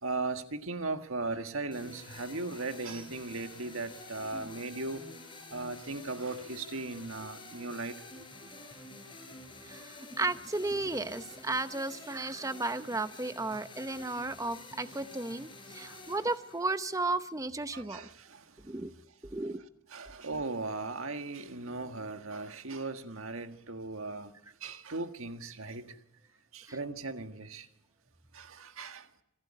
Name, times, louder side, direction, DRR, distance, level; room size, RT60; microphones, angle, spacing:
voice 1, 0.0-5.0 5.5-8.2 15.8-16.0 17.7-18.6 19.9-24.3 24.6-26.0 26.5-27.7 28.3-29.1, right 3 dB, 70° right, 1.7 m, -38 dB
sound 1, 1.7-17.7, left 2 dB, 25° left, 5.2 m, -49 dB
voice 2, 9.7-18.1 18.6-18.9 19.2-19.6 26.7-26.8, right 2 dB, 15° right, 0.8 m, -34 dB
27.0 x 12.5 x 8.9 m
head